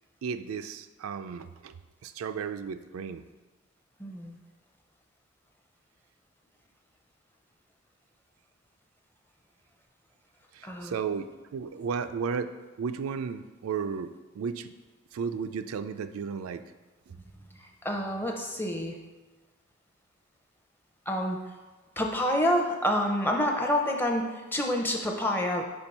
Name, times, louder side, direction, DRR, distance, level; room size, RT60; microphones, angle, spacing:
voice 1, 0.2-1.7 2.0-3.2 10.5-12.5 12.8-14.7 15.1-16.6, right 6 dB, 85° right, 10 dB, 0.3 m, -34 dB
voice 2, 4.0-4.4 10.6-11.0 17.6-19.0 21.1-21.4 22.0-25.6, left 1 dB, 10° left, 2 dB, 0.6 m, -28 dB
5.1 x 4.4 x 5.4 m, 1.2 s
head